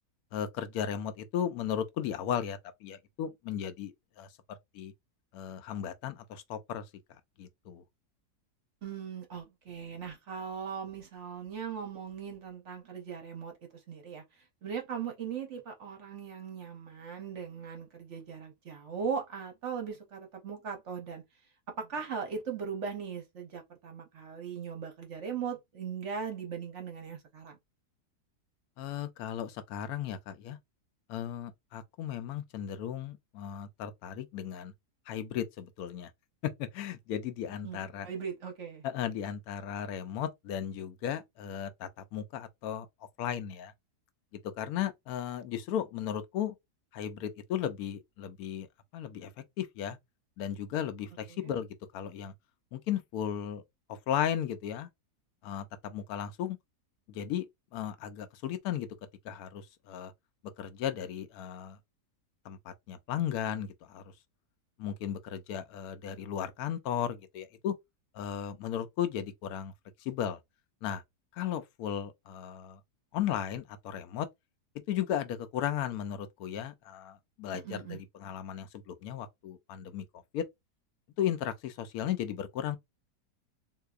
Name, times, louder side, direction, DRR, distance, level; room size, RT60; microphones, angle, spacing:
voice 1, 0.3-4.3 4.7-4.9 5.3-6.8 7.4-7.8 28.8-30.6 31.1-34.7 35.1-36.1 36.4-38.1 38.8-42.9 43.2-43.7 44.4-46.6 46.9-48.7 48.9-49.3 49.6-50.0 50.4-52.3 52.7-53.6 53.9-54.9 55.4-56.6 57.1-57.5 57.7-58.9 59.2-60.1 60.6-61.8 62.4-64.1 64.8-67.8 68.1-69.7 70.0-70.4 70.8-71.0 71.3-72.8 73.1-74.3 74.9-80.4 81.2-82.8, left 9 dB, 70° left, 1.0 m, -35 dB
voice 2, 8.8-13.5 13.9-21.2 21.7-27.6 37.6-38.8 51.3-51.5 77.5-78.0, right 6 dB, 55° right, 0.9 m, -39 dB
3.8 x 2.8 x 2.3 m
omnidirectional pair, 1.8 m